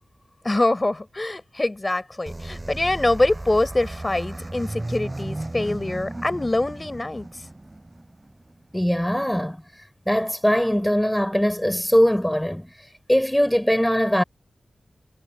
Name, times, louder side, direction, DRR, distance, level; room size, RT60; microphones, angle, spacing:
voice 1, 0.4-7.3, left 2 dB, 30° left, 4.6 m, -24 dB
sound 1, 2.3-8.8, right 2 dB, 25° right, 5.6 m, -35 dB
voice 2, 8.7-9.6 10.1-12.7 13.1-14.2, equal, 5° left, 4.1 m, -21 dB
cardioid pair, 45°, 0 cm